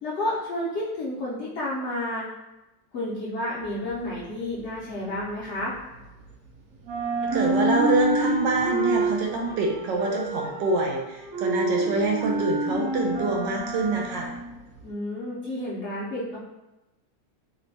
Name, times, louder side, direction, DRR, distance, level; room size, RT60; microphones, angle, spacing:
voice 1, 0.0-2.3 2.9-5.7 14.8-16.4, left 1 dB, 55° left, -8 dB, 0.8 m, -31 dB
sound 1, 3.6-6.5 6.8-14.9, right 2 dB, 65° right, 0.8 m, -28 dB
voice 2, 7.3-14.3, right 2 dB, 80° right, 0 dB, 1.3 m, -26 dB
3.2 x 2.2 x 3.9 m, 0.98 s
omnidirectional pair, 1.9 m